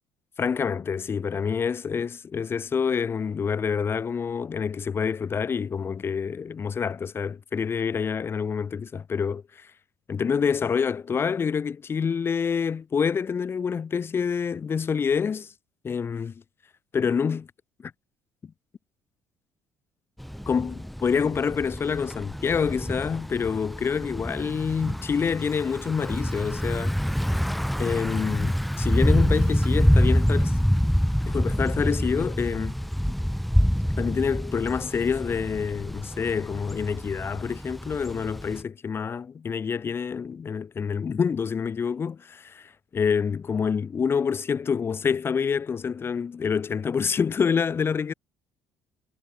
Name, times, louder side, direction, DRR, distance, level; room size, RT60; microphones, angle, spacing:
voice 1, 0.4-9.7 10.1-15.5 15.8-16.4 16.9-17.5 17.8-17.9 18.4-18.5 20.5-27.0 27.8-30.6 31.3-32.8 33.1-33.2 34.0-48.1, left 6 dB, 40° left, 5.9 m, -27 dB
Thunder / Bicycle, 20.2-38.6, equal, ahead, 1.7 m, -26 dB
hypercardioid pair, 65°, 6 cm